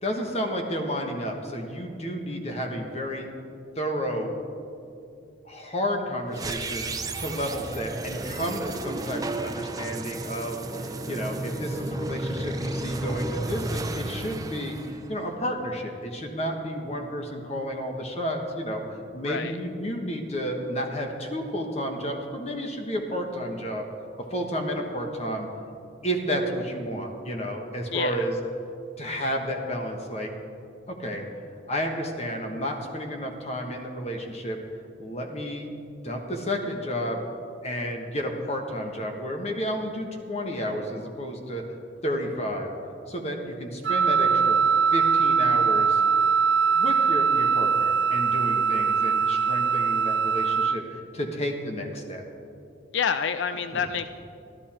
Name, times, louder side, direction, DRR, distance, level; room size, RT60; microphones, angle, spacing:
voice 1, 0.0-3.3 3.8-4.3 5.4-18.8 19.1-23.9 24.3-25.5 26.0-28.4 29.0-30.3 30.9-31.2 31.7-34.6 35.0-35.7 36.0-37.2 37.6-41.6 42.0-42.7 43.1-44.6 44.9-46.0 46.7-52.2 53.7-53.9, equal, 35° left, 2 dB, 1.3 m, -31 dB
sound 1, 6.3-15.5, right 2 dB, 20° right, 0.5 m, -32 dB
voice 2, 19.2-19.6 27.9-28.3 52.9-54.1, left 6 dB, 80° left, 11 dB, 0.4 m, -28 dB
Wind instrument woodwind instrument, 43.9-50.8, right 6 dB, 85° right, 0.5 m, -22 dB
13.0 x 12.5 x 4.4 m, 2.6 s
head